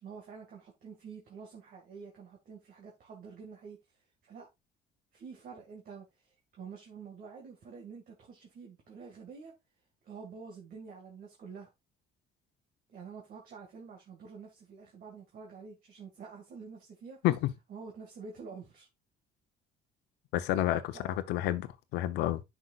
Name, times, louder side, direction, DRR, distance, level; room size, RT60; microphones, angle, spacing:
voice 1, 0.0-3.8 4.2-4.5 5.1-9.5 10.0-11.7 12.9-17.2 17.7-18.9 20.9-21.2, right 5 dB, 55° right, 2.1 m, -48 dB
voice 2, 20.3-22.4, left 14 dB, 90° left, 0.9 m, -30 dB
10.0 x 6.1 x 2.5 m
cardioid pair, 110°, 17 cm